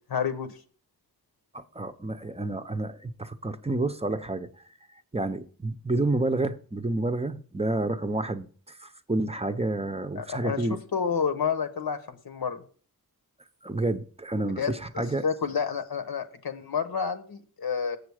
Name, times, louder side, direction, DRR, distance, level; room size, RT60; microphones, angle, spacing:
voice 1, 0.1-0.5 10.2-12.6 14.4-18.0, left 6 dB, 75° left, 1.0 m, -30 dB
voice 2, 1.5-4.5 5.1-10.8 13.6-15.2, right 2 dB, 15° right, 0.6 m, -29 dB
7.6 x 6.8 x 4.8 m
wide cardioid pair, 85°, 37 cm